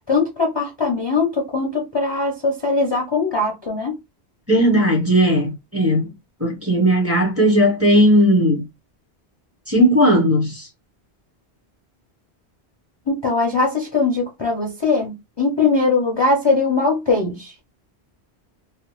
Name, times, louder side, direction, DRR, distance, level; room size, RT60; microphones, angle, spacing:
voice 1, 0.1-4.0 13.1-17.5, left 3 dB, 30° left, 0.5 m, -20 dB
voice 2, 4.5-6.1 6.4-8.6 9.7-10.7, equal, 15° right, 0.8 m, -16 dB
2.8 x 2.0 x 3.0 m
omnidirectional pair, 1.1 m